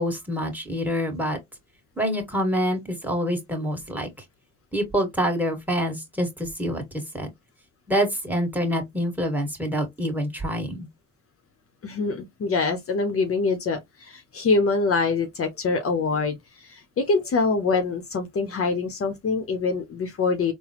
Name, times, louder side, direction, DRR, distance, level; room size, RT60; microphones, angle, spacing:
voice 1, 0.0-1.4 2.0-4.1 4.7-6.8 7.1-7.3 7.9-10.9, equal, 5° right, 1.7 m, -26 dB
voice 2, 11.8-20.5, left 4 dB, 45° left, 0.9 m, -25 dB
3.9 x 2.2 x 2.9 m
cardioid pair, 85°, 31 cm